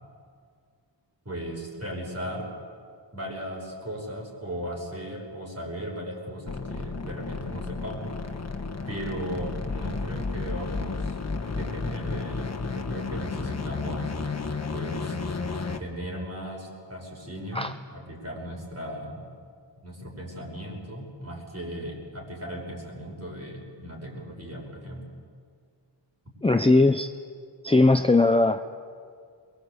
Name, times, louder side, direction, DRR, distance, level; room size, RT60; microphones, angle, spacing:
voice 1, 1.2-2.5 3.1-8.2 8.9-11.2 11.5-14.1 14.7-15.2 15.8-19.3 19.8-25.0, equal, 35° right, 0 dB, 5.9 m, -37 dB
sound 1, 6.5-15.8, left 4 dB, 35° left, 1.4 m, -32 dB
voice 2, 26.4-27.1 27.6-28.6, left 2 dB, 15° left, 7 dB, 0.6 m, -19 dB
22.5 x 22.0 x 8.2 m, 2.1 s
wide cardioid pair, 100°, 44 cm